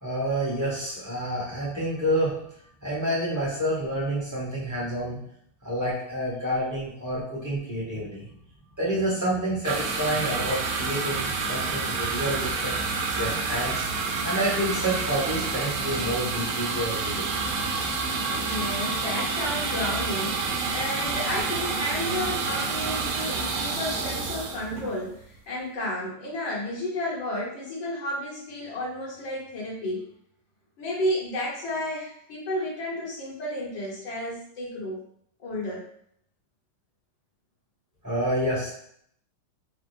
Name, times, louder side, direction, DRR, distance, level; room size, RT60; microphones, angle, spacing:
voice 1, 0.0-2.4 2.8-5.2 5.6-8.3 8.8-12.8 13.1-13.8 14.2-17.3 38.0-38.7, right 1 dB, 10° right, -8 dB, 1.3 m, -28 dB
sound 1, 9.6-25.4, right 4 dB, 90° right, 1.6 m, -29 dB
voice 2, 18.3-30.1 30.8-35.0 35.4-35.8, left 1 dB, 65° left, -4 dB, 2.0 m, -32 dB
5.0 x 2.4 x 3.4 m, 0.68 s
omnidirectional pair, 2.3 m